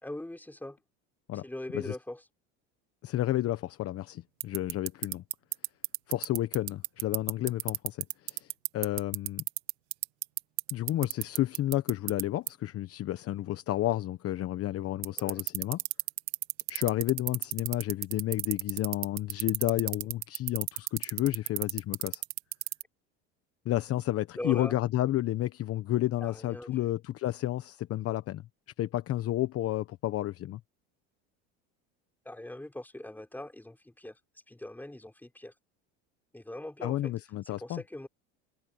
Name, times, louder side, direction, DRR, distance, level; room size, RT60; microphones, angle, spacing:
voice 1, 0.0-0.8 1.3-2.2 15.2-15.4 24.4-24.7 26.2-26.9 32.3-34.2 34.5-35.5 36.3-37.1 37.5-38.1, left 1 dB, 5° left, 5.4 m, -41 dB
voice 2, 3.0-5.2 6.1-9.4 10.7-15.8 16.7-22.2 23.6-28.4 28.8-30.6 36.8-37.8, left 14 dB, 45° left, 1.1 m, -31 dB
sound 1, 4.4-12.2 12.5-12.6 15.0-22.8, right 22 dB, 85° right, 2.1 m, -30 dB
supercardioid pair, 105°, 32 cm